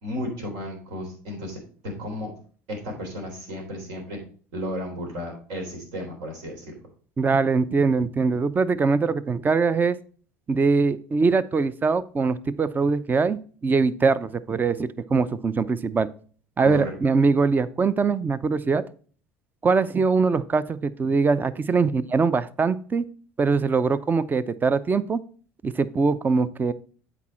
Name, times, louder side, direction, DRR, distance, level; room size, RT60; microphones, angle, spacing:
voice 1, 0.0-2.3 2.7-4.2 4.5-6.7 16.6-16.9, equal, 70° right, 2 dB, 3.5 m, -33 dB
voice 2, 7.2-10.0 10.5-16.1 16.6-18.8 19.6-23.1 23.4-25.2 25.6-26.7, right 4 dB, 25° right, 16 dB, 0.6 m, -22 dB
8.3 x 5.0 x 4.3 m, 0.43 s
hypercardioid pair, 75°, 7 cm